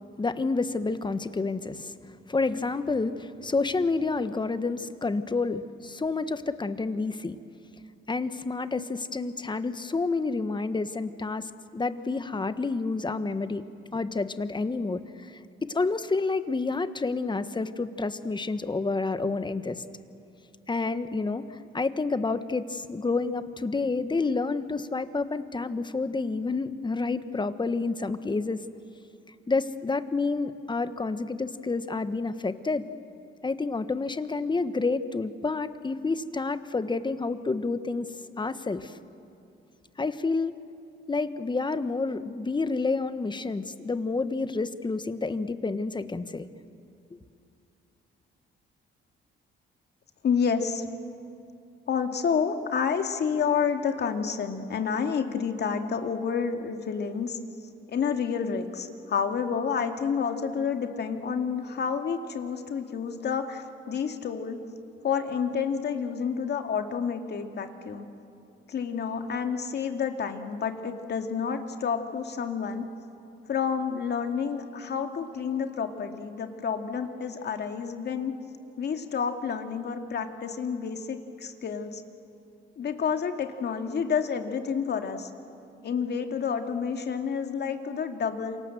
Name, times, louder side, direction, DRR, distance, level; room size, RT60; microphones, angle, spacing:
voice 1, 0.2-7.4 8.1-13.6 13.9-19.8 20.7-28.6 29.5-32.9 33.4-39.0 40.0-40.6 41.1-46.5, left 3 dB, 25° left, 11 dB, 1.3 m, -29 dB
voice 2, 50.2-50.8 51.9-57.4 57.9-64.6 65.0-68.1 68.7-72.9 73.5-78.3 78.8-82.0 82.8-85.3 85.8-88.6, left 6 dB, 55° left, 5 dB, 2.4 m, -29 dB
28.0 x 25.0 x 7.7 m, 2.6 s
cardioid pair, 90°, 20 cm